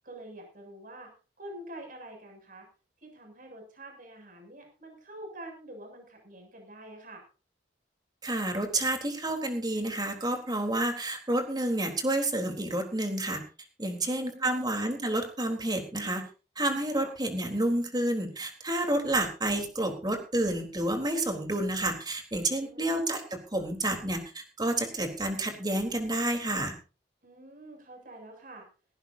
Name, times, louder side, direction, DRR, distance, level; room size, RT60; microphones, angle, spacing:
voice 1, 0.0-1.1 1.4-2.7 3.0-7.2 14.0-14.8 17.0-17.1 22.6-23.0 27.2-28.7, right 1 dB, 50° right, 3 dB, 7.5 m, -46 dB
voice 2, 8.2-13.4 13.8-16.2 16.6-23.2 23.5-26.8, right 1 dB, 25° right, 4 dB, 3.8 m, -29 dB
18.0 x 16.5 x 2.8 m, 0.34 s
head